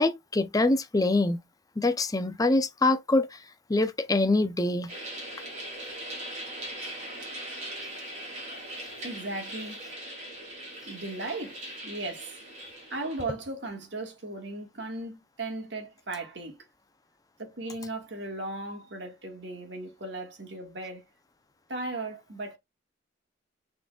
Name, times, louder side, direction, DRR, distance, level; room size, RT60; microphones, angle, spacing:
voice 1, 0.0-1.4 1.8-3.4 3.7-4.9, left 2 dB, 20° left, 0.5 m, -24 dB
sound 1, 4.9-13.2, right 1 dB, 35° right, 2.6 m, -40 dB
voice 2, 9.0-9.8 10.9-12.3 12.9-16.6 17.4-21.0 21.7-22.6, right 2 dB, 65° right, 1.7 m, -37 dB
5.9 x 3.8 x 2.3 m
head